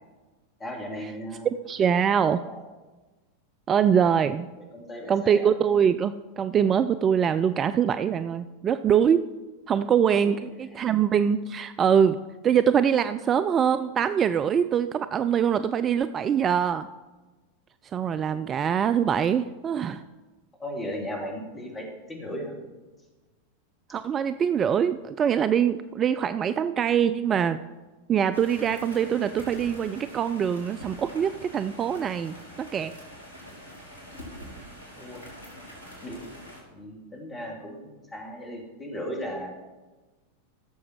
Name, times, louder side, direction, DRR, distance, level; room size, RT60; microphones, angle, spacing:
voice 1, 0.6-1.5 2.4-2.6 4.7-5.5 10.1-10.4 10.7-10.8 18.3-18.4 20.6-22.5 34.9-35.2 36.0-36.2 36.7-39.5, equal, 15° left, 0 dB, 3.0 m, -36 dB
voice 2, 1.7-2.4 3.7-4.5 5.1-9.2 9.7-12.2 12.4-16.9 17.8-20.0 23.9-27.6 28.1-32.9, right 8 dB, 25° right, 12 dB, 0.4 m, -23 dB
sound 1, 28.3-36.6, equal, 70° left, 4.7 m, -44 dB
16.0 x 7.1 x 4.7 m, 1.2 s
figure-of-eight pair, 90°, 0 cm